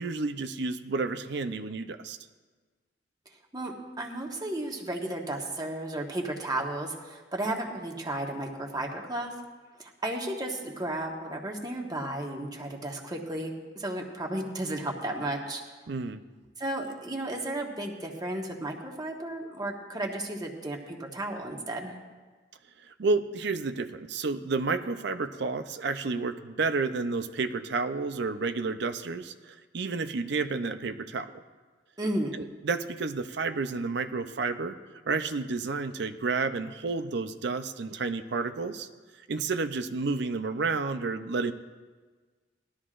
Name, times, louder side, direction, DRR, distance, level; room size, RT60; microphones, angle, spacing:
voice 1, 0.0-2.2 15.9-16.2 23.0-31.3 32.3-34.8 35.1-38.9 39.3-41.5, right 4 dB, 70° right, 9 dB, 0.6 m, -30 dB
voice 2, 3.5-9.3 9.8-15.6 16.6-21.9 32.0-32.4, right 1 dB, 20° right, 0 dB, 1.3 m, -33 dB
19.0 x 13.0 x 2.5 m, 1.4 s
head